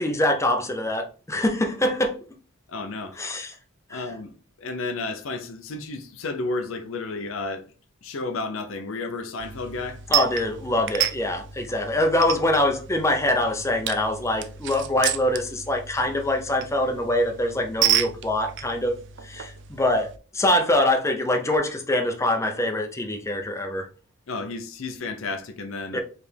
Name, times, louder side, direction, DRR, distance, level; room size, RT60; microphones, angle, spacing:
voice 1, 0.0-2.2 3.2-3.5 3.9-4.0 10.1-18.9 19.2-23.9 25.9-26.0, left 1 dB, 15° left, 0.6 m, -24 dB
voice 2, 2.7-3.2 3.9-7.6 8.0-10.0 24.3-26.0, left 3 dB, 65° left, 0.6 m, -32 dB
sound 1, 9.4-20.2, right 11 dB, 55° right, 0.5 m, -31 dB
4.8 x 3.3 x 3.3 m
head